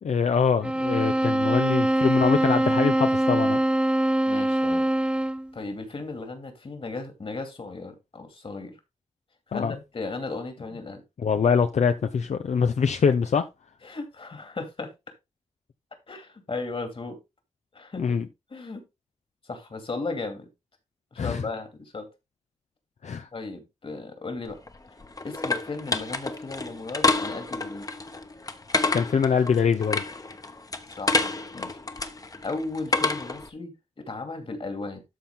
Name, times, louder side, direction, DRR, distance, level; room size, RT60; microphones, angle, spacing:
voice 1, 0.0-3.6 9.5-9.8 11.2-13.5 18.0-18.3 21.2-21.4 23.0-23.3 28.9-30.0, left 6 dB, 85° left, 0.6 m, -24 dB
sound 1, 0.6-5.5, right 1 dB, 10° right, 0.3 m, -23 dB
voice 2, 4.3-4.8 5.5-8.8 9.5-11.0 13.8-14.9 16.1-17.2 17.7-18.2 18.5-18.8 19.4-20.5 21.1-22.1 23.3-24.6 25.2-27.9 31.0-31.8 32.4-35.0, left 3 dB, 55° left, 2.5 m, -35 dB
sound 2, 24.5-33.5, left 3 dB, 30° left, 1.0 m, -29 dB
13.0 x 4.4 x 3.7 m
wide cardioid pair, 105°, 12 cm